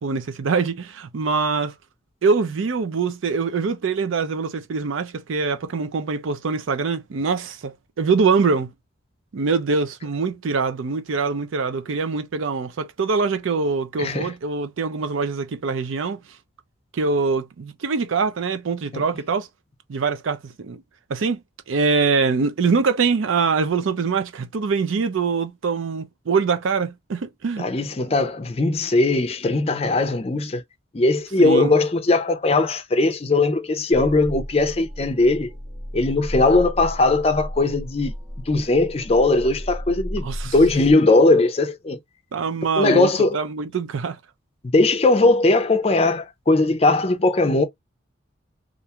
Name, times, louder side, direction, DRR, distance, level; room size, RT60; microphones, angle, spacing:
voice 1, 0.0-1.7 2.2-8.7 9.3-16.2 16.9-19.5 19.9-20.8 21.1-21.4 21.7-27.7 31.4-31.7 40.2-40.5 42.3-44.2, right 4 dB, 75° right, 0.5 m, -23 dB
voice 2, 14.0-14.3 18.9-19.0 27.6-30.6 30.9-35.5 35.9-38.1 38.5-42.0 42.8-43.4 44.7-47.6, left 2 dB, 30° left, 0.4 m, -19 dB
sound 1, 33.9-40.9, equal, 35° right, 0.7 m, -34 dB
2.4 x 2.3 x 2.8 m
head